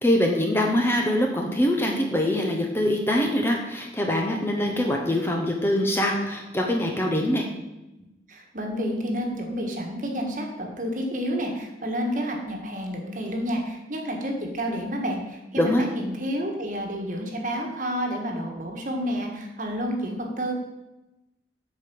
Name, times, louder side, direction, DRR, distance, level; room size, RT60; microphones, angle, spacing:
voice 1, 0.0-7.5 15.6-15.8, left 1 dB, 15° left, 1 dB, 0.9 m, -23 dB
voice 2, 8.3-20.5, equal, 45° right, 1 dB, 1.5 m, -30 dB
8.2 x 4.8 x 6.9 m, 0.98 s
head